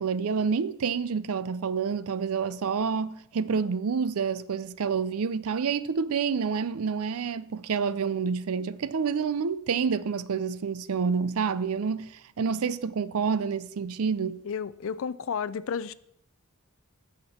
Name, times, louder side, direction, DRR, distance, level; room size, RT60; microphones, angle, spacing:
voice 1, 0.0-14.4, right 6 dB, 75° right, 0.5 m, -28 dB
voice 2, 14.4-15.9, left 6 dB, 65° left, 0.4 m, -32 dB
14.5 x 5.9 x 4.3 m
head